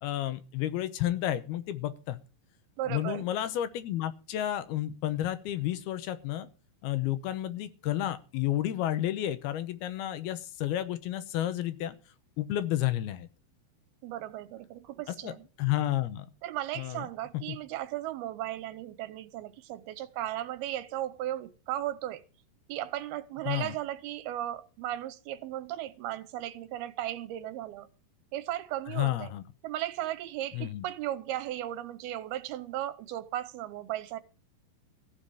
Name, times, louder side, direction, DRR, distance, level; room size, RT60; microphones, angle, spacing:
voice 1, 0.0-2.2 2.9-6.5 6.8-12.0 12.4-13.3 15.2-15.3 15.6-16.3 16.8-17.1 17.5-17.6 23.5-23.8 28.9-29.4 30.5-30.8, left 13 dB, 80° left, 2.8 m, -31 dB
voice 2, 2.8-3.3 14.0-15.5 16.4-22.2 22.7-27.9 28.3-29.3 29.6-34.2, right 13 dB, 75° right, 2.7 m, -36 dB
15.5 x 5.9 x 8.8 m
omnidirectional pair, 4.6 m